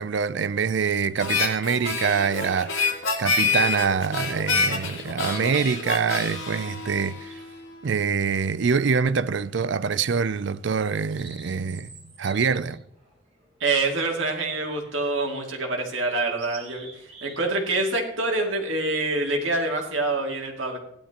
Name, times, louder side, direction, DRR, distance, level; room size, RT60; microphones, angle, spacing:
voice 1, 0.0-2.9 3.2-7.3 7.8-11.9 12.2-12.8, right 6 dB, 65° right, 0.5 m, -25 dB
Harmonica, 1.2-7.7, left 4 dB, 85° left, 2.4 m, -27 dB
sound 1, 7.2-7.7 8.8-9.5 9.9-10.1 10.6-14.1 14.8-15.3 15.6-15.7 16.1-17.7 18.0-18.2, right 3 dB, 35° right, 4.7 m, -49 dB
voice 2, 13.6-20.8, right 2 dB, 80° right, 2.5 m, -26 dB
16.5 x 11.5 x 3.0 m
head